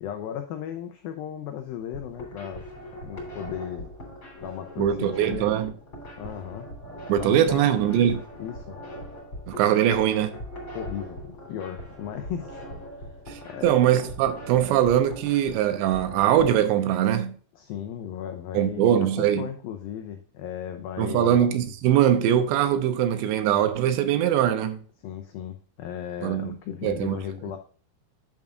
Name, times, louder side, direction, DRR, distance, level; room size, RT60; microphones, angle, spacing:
voice 1, 0.0-2.6 2.9-3.9 4.4-5.5 6.2-6.7 7.2-7.8 8.4-8.8 10.7-12.6 13.0-13.2 13.5-13.8 17.6-18.9 19.2-21.4 25.0-27.6, left 10 dB, 85° left, 2.0 m, -36 dB
sound 1, 1.9-16.6, equal, 30° left, 3.2 m, -41 dB
voice 2, 4.8-5.7 7.1-8.2 9.5-10.3 13.3-17.4 18.5-19.5 21.0-24.8 26.2-26.6 26.8-27.2, right 10 dB, 85° right, 3.0 m, -22 dB
8.8 x 7.1 x 2.5 m
omnidirectional pair, 5.0 m